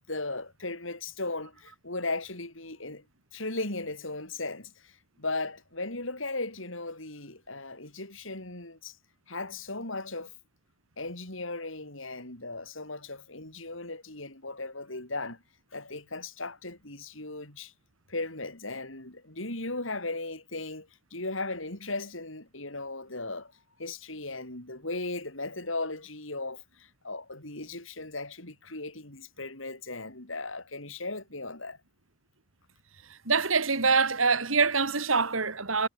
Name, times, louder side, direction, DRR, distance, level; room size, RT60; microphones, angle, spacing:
voice 1, 0.1-3.0 3.3-9.0 9.3-10.3 11.0-15.4 15.7-17.7 18.1-23.5 23.8-31.8, left 2 dB, 75° left, 7.8 m, -37 dB
voice 2, 33.3-35.9, right 4 dB, 85° right, 3.4 m, -25 dB
head